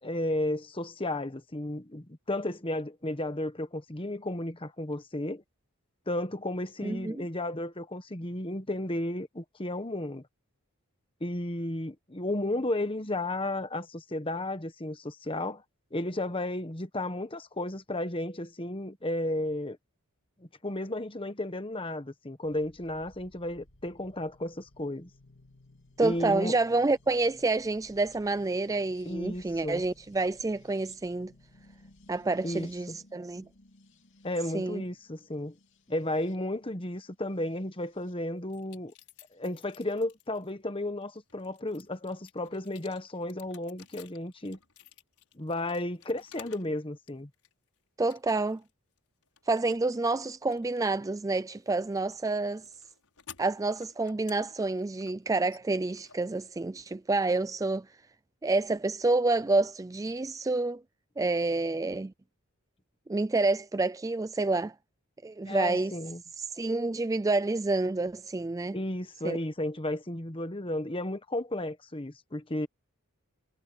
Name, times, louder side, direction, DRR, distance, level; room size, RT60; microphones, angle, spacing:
voice 1, 0.0-5.4 6.1-10.2 11.2-15.6 15.9-19.8 20.4-25.1 26.0-26.6 29.0-29.8 32.4-33.0 34.2-35.5 35.9-38.9 39.3-44.6 45.3-47.3 65.4-66.2 68.7-72.7, left 1 dB, 25° left, 1.3 m, -33 dB
voice 2, 6.8-7.2 26.0-31.3 32.1-33.4 34.5-34.8 48.0-48.6 49.5-52.6 53.4-57.9 58.4-60.8 61.2-62.1 63.1-64.7 65.2-66.0 66.4-68.8 69.2-69.4, right 3 dB, 15° right, 0.3 m, -28 dB
sound 1, 22.4-38.2 39.3-39.9, left 2 dB, 55° left, 2.9 m, -60 dB
sound 2, 38.5-40.5 41.0-46.7 47.1-47.7 48.1-48.7 49.0-56.9, left 9 dB, 80° left, 6.4 m, -55 dB
head